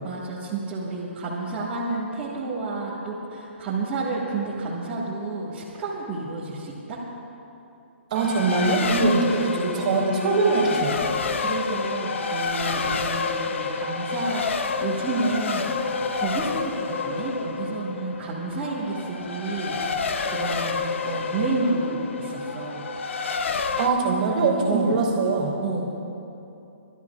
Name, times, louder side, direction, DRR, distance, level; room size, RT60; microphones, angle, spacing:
voice 1, 0.0-7.0 9.0-9.4 11.3-15.7 16.1-19.8 20.2-20.8 21.0-22.8 24.7-24.9 25.6-25.9, right 3 dB, 15° right, -10 dB, 1.6 m, -30 dB
Race car auto racing, 8.1-23.9, left 4 dB, 70° left, 0.8 m, -29 dB
voice 2, 8.1-11.0 23.8-25.5, right 3 dB, 35° right, -2 dB, 2.8 m, -22 dB
29.5 x 13.0 x 2.4 m, 2.8 s
hypercardioid pair, 170°, 7 cm